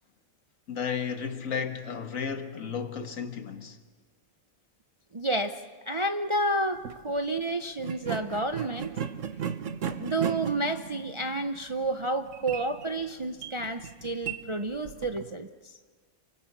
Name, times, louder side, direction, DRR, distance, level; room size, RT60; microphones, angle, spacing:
voice 1, 0.7-3.8, left 6 dB, 70° left, 1.8 m, -33 dB
voice 2, 5.1-5.6 5.9-9.0 9.9-15.7, right 2 dB, 35° right, 0.5 m, -30 dB
sound 1, 6.7-7.0 7.8-15.3, right 8 dB, 65° right, 1.3 m, -37 dB
28.5 x 24.0 x 6.1 m
omnidirectional pair, 1.5 m